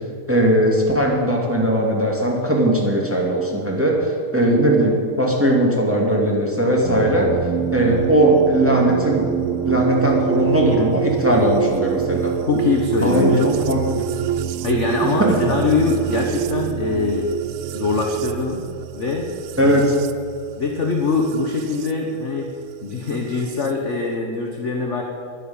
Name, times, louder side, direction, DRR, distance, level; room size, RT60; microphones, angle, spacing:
voice 1, 0.3-7.3 7.7-9.3 9.6-12.3 13.0-14.1 15.2-15.4 19.6-20.0, right 1 dB, 5° right, -2 dB, 2.2 m, -18 dB
sound 1, 6.8-21.9 23.1-23.7, right 11 dB, 80° right, 1.5 m, -26 dB
voice 2, 12.5-13.7 14.6-17.3 17.7-18.6 18.9-19.3 19.6-19.8 20.6-22.5 22.8-25.0, left 4 dB, 40° left, 1 dB, 1.3 m, -22 dB
11.5 x 10.0 x 8.7 m, 2.3 s
omnidirectional pair, 2.4 m